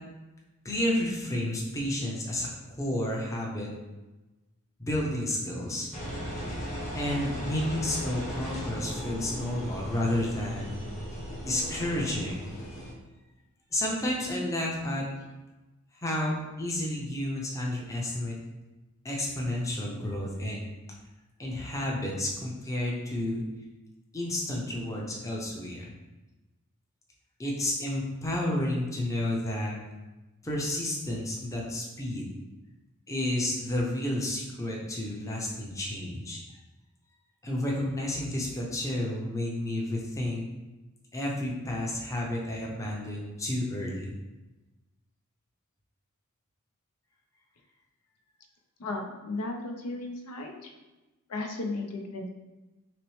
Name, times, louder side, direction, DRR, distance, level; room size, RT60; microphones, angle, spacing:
voice 1, 0.6-2.5 2.8-3.7 4.8-5.9 6.5-6.6 6.9-10.7 11.4-12.4 13.7-15.1 16.0-18.4 19.0-20.7 21.4-23.4 24.1-25.9 27.4-29.7 30.4-32.2 33.1-36.4 37.4-40.4 41.1-44.1, left 1 dB, 15° left, -3 dB, 0.6 m, -31 dB
Engine, 5.9-12.9, equal, 35° left, 1.2 m, -37 dB
voice 2, 48.8-50.7 51.3-52.3, left 2 dB, 85° left, 3 dB, 0.5 m, -35 dB
5.8 x 2.0 x 3.1 m, 1.1 s
head